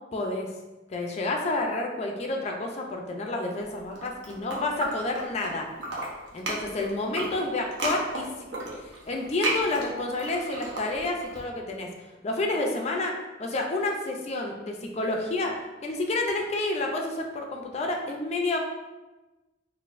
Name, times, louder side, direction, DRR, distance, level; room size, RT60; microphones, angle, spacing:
voice 1, 0.1-0.5 0.9-5.7 6.3-8.5 8.8-11.9 12.2-13.1 13.4-15.6 15.8-18.6, left 2 dB, 35° left, 1 dB, 0.4 m, -29 dB
sound 1, 3.8-5.5 5.8-11.4, right 2 dB, 70° right, 0.7 m, -33 dB
4.0 x 2.5 x 2.5 m, 1.1 s
head